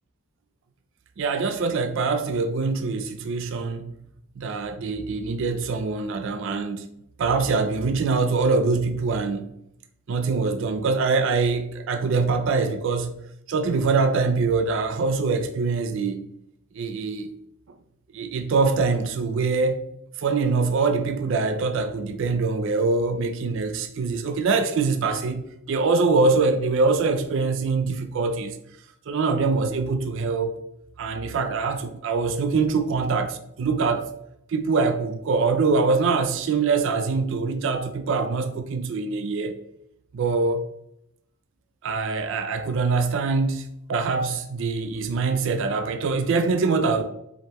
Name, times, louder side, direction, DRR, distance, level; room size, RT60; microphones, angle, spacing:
voice 1, 1.2-3.9 4.4-6.9 7.2-9.5 10.1-13.2 13.5-16.2 16.7-17.3 18.1-19.8 20.2-28.5 29.1-30.6 31.0-33.3 33.6-34.1 34.5-39.6 40.1-40.6 41.8-43.6 43.9-47.0, right 4 dB, 65° right, 0.4 m, -24 dB
4.8 x 3.1 x 2.9 m
head